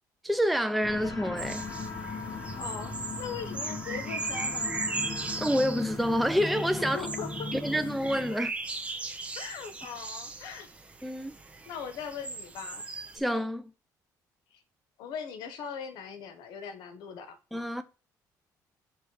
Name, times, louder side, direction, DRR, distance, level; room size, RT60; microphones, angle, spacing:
voice 1, 0.2-1.7 5.4-7.0 7.5-8.5 11.0-11.3 13.1-13.7 17.5-17.8, equal, ahead, 0.4 m, -28 dB
sound 1, 0.8-8.3, left 3 dB, 30° left, 1.1 m, -38 dB
sound 2, 1.4-13.2, right 3 dB, 15° right, 1.0 m, -38 dB
voice 2, 2.6-4.8 6.8-7.5 9.4-10.7 11.7-12.8 14.5-14.6 15.0-17.4, left 6 dB, 80° left, 1.0 m, -40 dB
6.8 x 3.2 x 4.6 m
cardioid pair, 90°, 7 cm